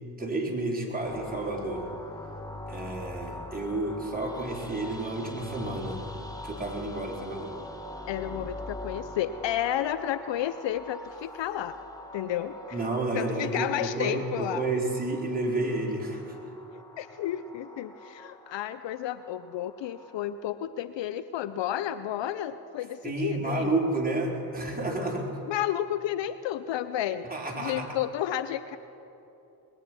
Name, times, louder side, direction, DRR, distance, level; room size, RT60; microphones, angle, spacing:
voice 1, 0.2-1.9 2.7-6.1 6.4-7.5 12.7-16.4 23.0-25.4 27.3-27.9, right 2 dB, 15° right, -2 dB, 4.1 m, -31 dB
sound 1, 1.0-20.3, left 1 dB, 5° left, 1.8 m, -43 dB
voice 2, 8.1-11.8 12.1-12.8 13.1-14.7 16.7-23.8 25.5-27.3 27.5-28.8, left 11 dB, 60° left, 13 dB, 0.7 m, -32 dB
20.5 x 10.0 x 6.1 m, 2.7 s
hypercardioid pair, 45°, 50 cm